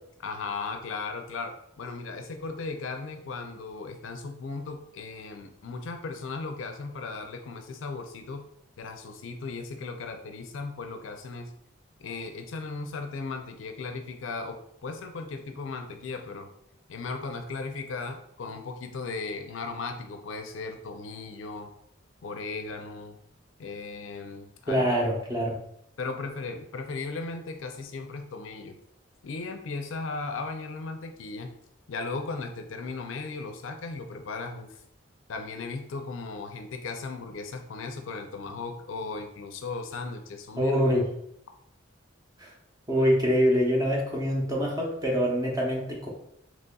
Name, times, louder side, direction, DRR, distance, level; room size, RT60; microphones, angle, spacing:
voice 1, 0.2-8.4 8.8-11.5 12.0-16.5 16.9-21.7 22.2-23.2 23.6-24.9 26.0-28.7 29.2-31.5 31.9-34.8 35.3-40.8, left 3 dB, 80° left, 6 dB, 0.5 m, -36 dB
voice 2, 24.7-25.5 40.6-41.0 42.4-42.5 42.9-46.1, equal, 20° right, -2 dB, 0.8 m, -25 dB
4.0 x 3.0 x 2.3 m, 0.73 s
head